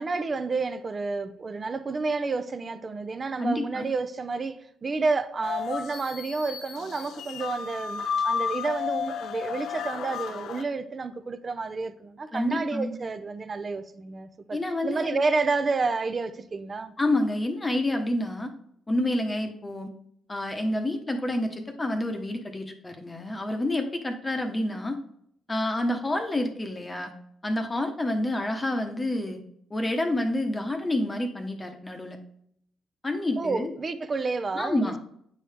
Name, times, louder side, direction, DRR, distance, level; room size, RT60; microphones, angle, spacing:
voice 1, 0.0-14.6 14.8-16.9 33.4-35.0, right 4 dB, 35° right, 0.6 m, -30 dB
voice 2, 3.4-3.9 12.3-13.0 14.5-15.2 17.0-18.5 18.9-19.9 20.3-25.0 25.5-27.1 27.4-29.4 29.7-32.2 33.0-33.7 34.5-35.0, left 1 dB, 20° left, 1.0 m, -28 dB
sound 1, 5.4-10.6, left 7 dB, 75° left, 0.6 m, -32 dB
8.4 x 4.7 x 3.4 m
cardioid pair, 90°, 0 cm